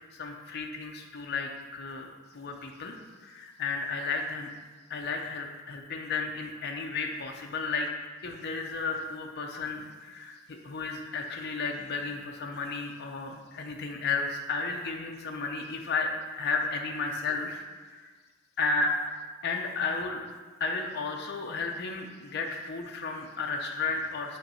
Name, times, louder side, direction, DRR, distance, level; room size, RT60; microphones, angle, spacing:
voice 1, 0.1-2.1 2.3-4.5 4.9-7.9 8.2-10.4 10.6-16.1 16.4-17.6 17.9-18.1 18.6-18.9 19.4-20.2 20.6-24.4, left 4 dB, 50° left, 2 dB, 0.5 m, -33 dB
5.5 x 3.2 x 5.4 m, 1.4 s
head